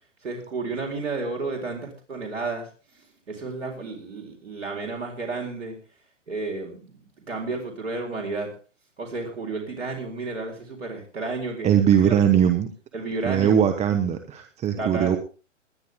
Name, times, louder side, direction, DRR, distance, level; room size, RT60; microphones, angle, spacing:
voice 1, 0.2-5.8 6.3-8.5 9.0-11.7 12.0-12.1 12.9-13.6 14.8-15.1, right 3 dB, 80° right, 2 dB, 4.4 m, -32 dB
voice 2, 11.6-12.7 13.2-15.2, right 9 dB, 20° right, 7 dB, 1.2 m, -20 dB
20.5 x 10.5 x 3.7 m, 0.36 s
hypercardioid pair, 125°, 36 cm